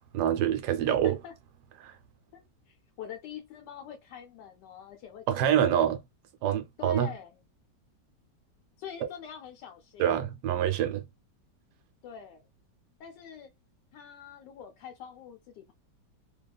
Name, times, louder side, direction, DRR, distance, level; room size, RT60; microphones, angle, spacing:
voice 1, 0.1-1.1 1.8-1.9 5.3-6.0 6.4-7.1 10.0-11.0, right 10 dB, 75° right, 1.1 m, -26 dB
voice 2, 0.9-1.3 2.7-5.7 6.8-7.4 8.8-10.1 12.0-12.5 13.0-13.5 13.9-15.7, left 8 dB, 80° left, 1.2 m, -45 dB
2.8 x 2.3 x 2.3 m
omnidirectional pair, 1.8 m